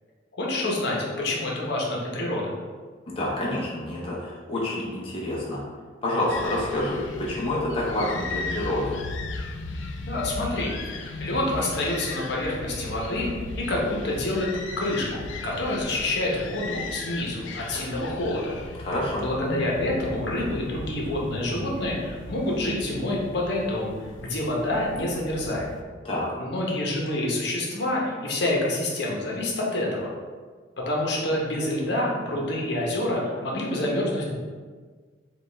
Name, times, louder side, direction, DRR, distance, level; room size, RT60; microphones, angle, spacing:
voice 1, 0.3-2.5 10.1-18.6 19.2-25.7 26.4-30.1 30.8-34.3, left 1 dB, 60° left, -3 dB, 0.8 m, -27 dB
voice 2, 3.1-5.6 6.0-9.0 18.8-19.2 26.0-26.3, left 1 dB, 30° left, -5 dB, 0.7 m, -28 dB
sound 1, 6.3-25.8, left 3 dB, 80° left, 0.4 m, -36 dB
5.0 x 2.4 x 3.3 m, 1.5 s
head